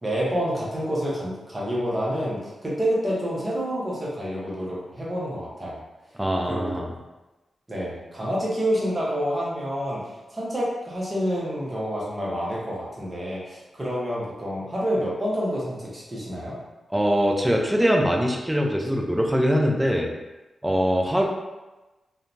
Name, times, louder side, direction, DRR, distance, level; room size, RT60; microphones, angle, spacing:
voice 1, 0.0-5.8 6.4-6.7 7.7-16.6, equal, 25° right, -6 dB, 1.0 m, -28 dB
voice 2, 6.2-6.9 16.9-20.1 20.6-21.2, equal, 10° right, 0 dB, 0.5 m, -22 dB
2.7 x 2.2 x 2.6 m, 1.1 s
cardioid pair, 65°, 0 cm